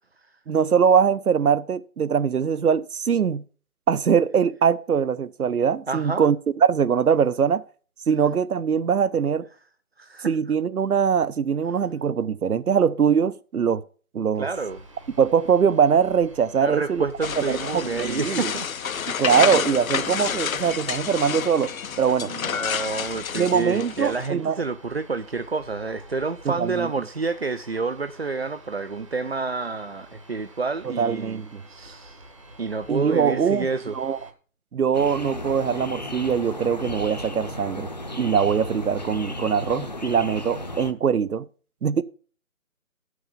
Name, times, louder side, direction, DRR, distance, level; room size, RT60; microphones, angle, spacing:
voice 1, 0.5-3.4 3.9-7.6 8.1-9.5 10.3-13.8 14.1-14.5 15.2-17.0 17.4-18.5 19.1-21.7 22.0-22.3 23.4-24.6 26.5-26.9 30.8-31.6 32.9-33.7 33.9-34.2 34.7-37.9 38.2-41.4 41.8-42.0, right 7 dB, 85° right, 0.8 m, -22 dB
voice 2, 5.9-6.3 10.0-10.3 14.4-14.8 16.5-18.7 20.5-21.0 22.2-31.4 31.7-32.2 32.6-33.9, right 4 dB, 45° right, 0.5 m, -29 dB
sound 1, 14.5-34.3, right 1 dB, 20° right, 1.0 m, -48 dB
sound 2, 17.2-24.3, left 8 dB, 70° left, 0.6 m, -29 dB
sound 3, 34.9-40.9, left 1 dB, 30° left, 0.7 m, -34 dB
12.5 x 6.4 x 5.1 m
figure-of-eight pair, 165°, 43 cm